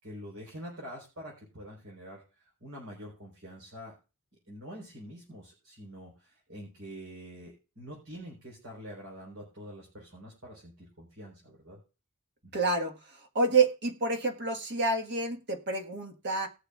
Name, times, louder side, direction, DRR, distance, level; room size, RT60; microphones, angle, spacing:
voice 1, 0.0-3.9 4.5-11.8 12.4-12.5, equal, 70° right, -4 dB, 4.1 m, -46 dB
voice 2, 12.5-13.0 13.3-16.5, right 3 dB, 55° right, 3 dB, 1.5 m, -28 dB
19.5 x 6.7 x 2.4 m, 0.31 s
head